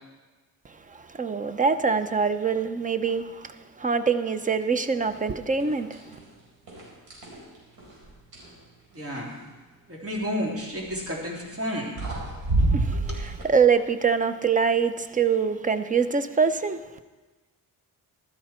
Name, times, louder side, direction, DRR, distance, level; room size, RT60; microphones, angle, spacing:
voice 1, 1.1-6.0 12.7-16.8, right 5 dB, 20° right, 0.6 m, -24 dB
sound 1, 5.0-5.3 5.6-6.2 6.7-8.5 10.7-11.0 11.7-11.8 12.0-13.4, right 2 dB, 80° right, 4.9 m, -28 dB
voice 2, 8.9-9.3 9.9-12.0 12.9-13.0, equal, 40° right, 3.1 m, -31 dB
15.5 x 12.5 x 4.4 m
wide cardioid pair, 135°, 36 cm